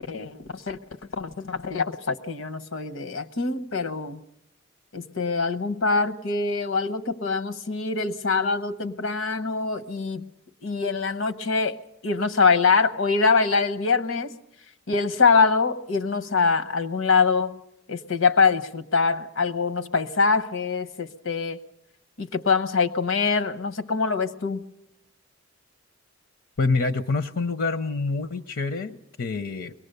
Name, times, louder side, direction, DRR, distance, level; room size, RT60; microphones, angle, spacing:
voice 1, 0.1-0.8 1.1-4.2 4.9-10.3 10.6-14.4 14.9-17.6 17.9-21.6 22.2-24.6, left 4 dB, 90° left, 9 dB, 1.0 m, -24 dB
voice 2, 26.6-29.7, left 3 dB, 75° left, 11 dB, 0.7 m, -26 dB
23.0 x 18.5 x 6.7 m, 0.82 s
head